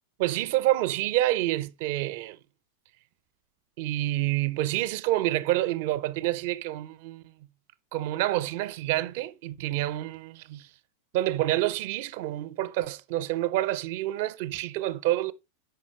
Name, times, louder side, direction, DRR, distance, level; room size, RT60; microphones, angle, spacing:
voice 1, 0.2-2.4 3.8-7.3 7.9-10.7 11.1-15.3, right 15 dB, 50° right, 0.6 m, -28 dB
6.8 x 5.5 x 3.0 m
figure-of-eight pair, 90°, 0 cm